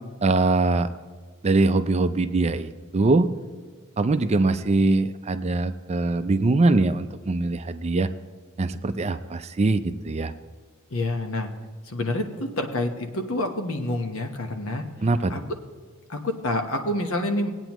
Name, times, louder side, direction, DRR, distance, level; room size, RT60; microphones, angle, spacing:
voice 1, 0.2-0.9 1.4-3.3 4.0-8.1 8.6-10.3 15.0-15.3, right 2 dB, 30° right, 10 dB, 0.4 m, -22 dB
voice 2, 10.9-11.5 11.9-14.8 15.3-15.4 16.1-17.5, left 1 dB, 65° left, 4 dB, 1.1 m, -27 dB
19.0 x 9.0 x 3.0 m, 1.5 s
head